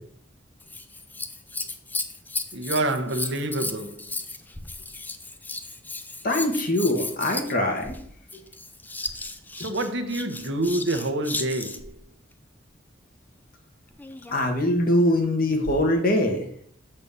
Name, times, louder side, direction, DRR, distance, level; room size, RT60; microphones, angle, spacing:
Scissors, 0.6-12.0 13.9-14.5 15.2-15.3, left 3 dB, 10° left, 0.5 m, -35 dB
voice 1, 2.5-4.1 9.6-12.0, right 1 dB, 70° right, 1.0 m, -27 dB
voice 2, 6.2-8.0 14.3-16.5, left 1 dB, 50° left, 1.6 m, -22 dB
7.0 x 4.3 x 6.8 m
head